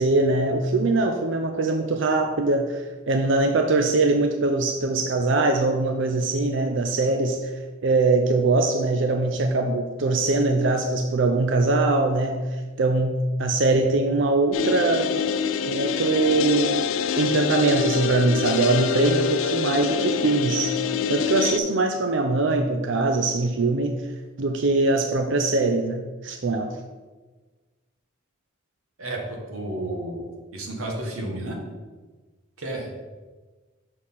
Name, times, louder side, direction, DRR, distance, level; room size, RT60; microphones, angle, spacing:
voice 1, 0.0-7.5 7.8-13.1 13.4-15.1 15.7-16.8 17.2-20.8 21.1-23.9 24.4-26.8, right 3 dB, 60° right, 5 dB, 0.5 m, -22 dB
sound 1, 14.5-21.6, left 7 dB, 70° left, 0.4 m, -25 dB
voice 2, 29.0-31.6 32.6-32.9, right 1 dB, 80° right, 1 dB, 1.5 m, -32 dB
6.4 x 4.5 x 5.5 m, 1.3 s
head